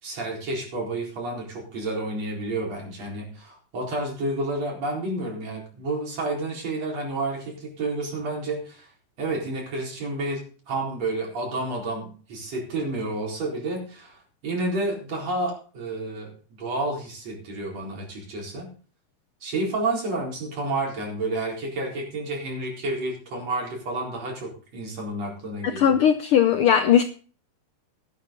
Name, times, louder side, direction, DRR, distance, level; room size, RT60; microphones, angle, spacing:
voice 1, 0.0-8.9 9.2-10.4 10.7-14.2 14.4-18.7 19.4-25.9, right 2 dB, 55° right, 0 dB, 5.4 m, -30 dB
voice 2, 25.8-27.0, left 9 dB, 90° left, 9 dB, 1.2 m, -18 dB
14.0 x 12.0 x 3.8 m, 0.40 s
omnidirectional pair, 3.5 m